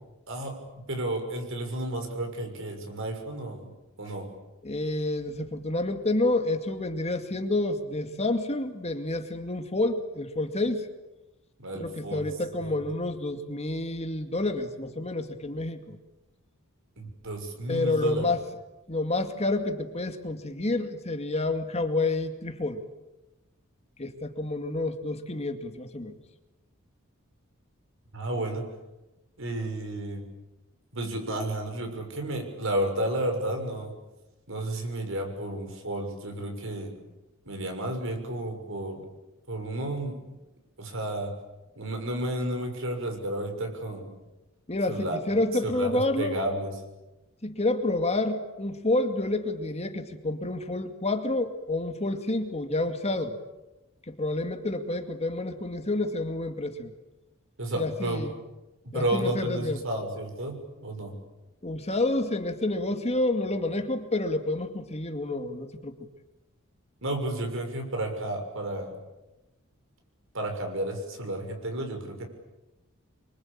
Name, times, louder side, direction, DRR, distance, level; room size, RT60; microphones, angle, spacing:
voice 1, 0.9-3.7 4.0-4.3 11.6-12.3 12.6-12.8 17.0-18.3 28.1-28.7 29.4-30.3 30.9-33.9 34.5-36.9 37.4-39.0 39.5-40.2 40.8-41.4 41.8-44.1 44.9-45.2 45.7-46.8 57.6-58.3 58.9-61.2 67.0-68.9 70.3-72.2, right 1 dB, 65° right, 5 dB, 6.5 m, -32 dB
voice 2, 4.6-10.9 11.7-16.0 17.7-18.4 18.9-22.8 24.0-26.1 44.7-46.4 47.4-53.4 54.1-56.9 57.7-58.3 58.9-59.8 61.6-66.0, left 2 dB, 30° left, 6 dB, 2.3 m, -29 dB
27.5 x 24.5 x 8.8 m, 1.0 s
head